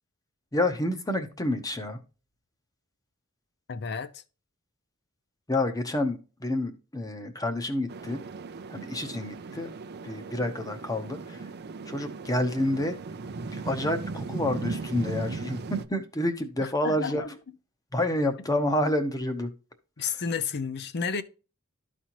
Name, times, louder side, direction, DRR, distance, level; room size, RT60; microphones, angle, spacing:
voice 1, 0.5-2.0 5.5-8.2 8.7-9.7 10.0-11.5 11.9-12.9 13.5-17.2 17.9-19.5 20.0-20.2, left 1 dB, 15° left, 0.9 m, -29 dB
voice 2, 3.7-4.2 16.6-17.3 20.0-21.2, left 5 dB, 50° left, 0.6 m, -31 dB
sound 1, 7.9-15.9, right 4 dB, 50° right, 0.5 m, -37 dB
13.0 x 4.3 x 3.0 m
head